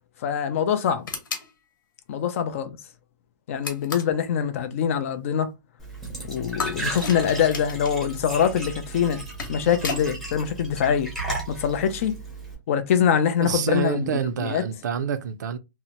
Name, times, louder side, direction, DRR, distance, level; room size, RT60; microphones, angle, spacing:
voice 1, 0.2-1.0 2.1-2.7 3.5-5.5 6.2-9.2 9.5-11.1 11.5-12.1 12.7-14.1 14.4-14.6, left 8 dB, 40° left, 0.4 m, -24 dB
sound 1, 1.1-1.5 3.6-4.2 6.6-8.0 9.1-10.1, left 4 dB, 75° left, 1.1 m, -33 dB
Glass / Trickle dribble / Fill (with liquid), 5.8-12.5, right 3 dB, ahead, 0.7 m, -35 dB
voice 2, 13.4-15.6, right 7 dB, 60° right, 0.4 m, -27 dB
2.7 x 2.1 x 2.8 m
hypercardioid pair, 165°, 11 cm